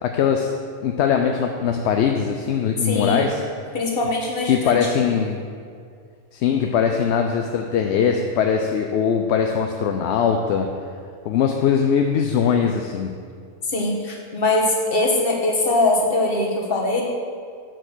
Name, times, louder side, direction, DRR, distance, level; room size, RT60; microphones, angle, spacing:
voice 1, 0.0-0.5 0.8-3.4 4.5-5.4 6.3-10.7 11.2-13.1, left 7 dB, 65° left, 4 dB, 0.8 m, -21 dB
voice 2, 2.8-3.2 3.7-5.2 13.6-17.0, left 2 dB, 45° left, -1 dB, 1.5 m, -22 dB
6.7 x 6.1 x 6.3 m, 2.2 s
omnidirectional pair, 1.3 m